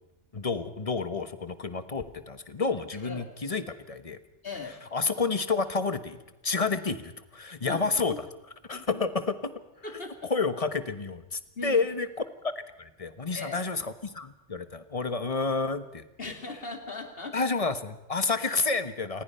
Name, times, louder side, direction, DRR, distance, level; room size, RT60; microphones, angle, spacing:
voice 1, 0.3-4.2 4.9-6.2 6.4-8.2 8.7-9.5 10.2-12.1 12.4-16.3 17.3-19.2, left 4 dB, 30° left, 11 dB, 1.2 m, -30 dB
voice 2, 4.4-4.8 6.6-6.7 7.7-8.2 8.7-9.1 9.8-10.3 11.6-11.8 13.3-13.6 16.2-17.4, left 3 dB, 50° left, 4 dB, 3.0 m, -39 dB
27.5 x 19.5 x 5.6 m, 0.97 s
omnidirectional pair, 1.2 m